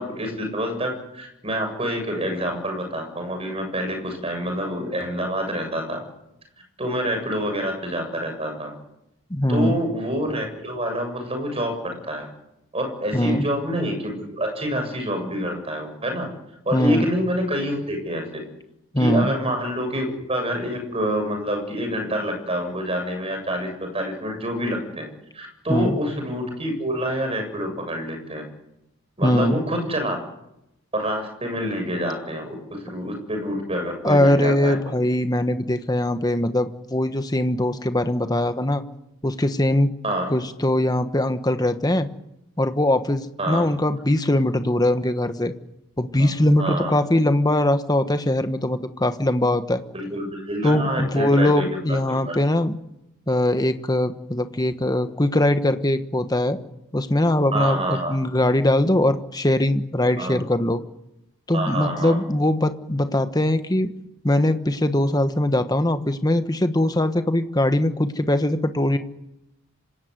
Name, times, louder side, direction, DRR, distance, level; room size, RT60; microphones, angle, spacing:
voice 1, 0.0-6.0 6.8-8.7 9.5-12.3 12.7-16.3 16.6-18.4 19.0-25.0 25.3-28.4 29.2-30.2 30.9-34.9 40.0-40.3 43.4-43.7 46.2-46.3 46.6-46.9 49.9-51.8 52.1-52.4 57.5-58.1 60.2-60.4 61.5-62.2, equal, 30° right, 5 dB, 7.6 m, -27 dB
voice 2, 9.3-9.8 13.1-13.5 16.7-17.1 18.9-19.3 25.7-26.0 29.2-29.6 34.0-38.8 39.2-39.9 40.3-42.1 42.6-45.5 46.0-49.8 50.6-52.7 53.3-56.6 56.9-60.8 61.5-63.9 64.2-69.0, left 1 dB, 20° left, 9 dB, 1.3 m, -21 dB
26.0 x 17.0 x 9.6 m, 0.86 s
head